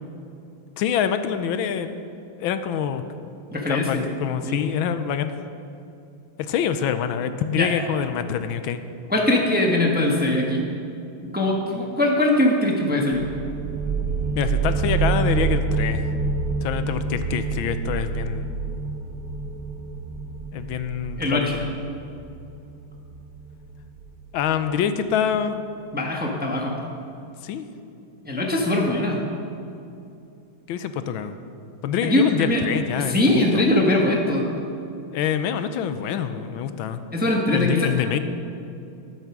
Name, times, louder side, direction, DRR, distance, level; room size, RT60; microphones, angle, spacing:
voice 1, 0.8-2.0 2.4-3.0 3.7-5.4 6.4-8.8 14.3-16.1 16.6-18.5 20.5-21.7 24.3-25.7 27.4-27.7 30.7-31.4 31.8-33.6 35.1-37.0 37.5-38.2, left 8 dB, 85° left, 10 dB, 1.4 m, -26 dB
voice 2, 3.5-4.1 4.4-4.7 7.5-7.7 9.1-10.6 11.2-13.2 21.2-21.6 25.9-26.7 28.2-29.2 32.0-32.6 33.0-34.5 37.1-37.9, left 1 dB, 5° right, -1 dB, 0.9 m, -21 dB
sound 1, 13.1-24.5, right 4 dB, 60° right, 1.0 m, -27 dB
12.5 x 8.2 x 6.0 m, 2.7 s
omnidirectional pair, 2.2 m